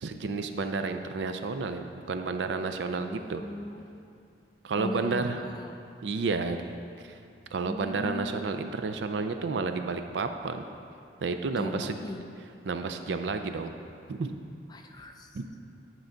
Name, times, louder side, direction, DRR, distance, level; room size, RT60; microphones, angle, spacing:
voice 1, 0.0-3.4 4.6-5.4 6.0-6.6 7.0-7.1 7.5-10.6 11.2-12.0 12.7-13.7 14.1-14.4 15.3-15.5, right 4 dB, 80° right, 7 dB, 0.4 m, -31 dB
voice 2, 3.0-3.8 4.8-5.8 7.6-8.3 11.5-12.2 14.7-15.4, left 2 dB, 25° left, 3 dB, 0.4 m, -39 dB
9.6 x 4.6 x 3.9 m, 2.5 s
head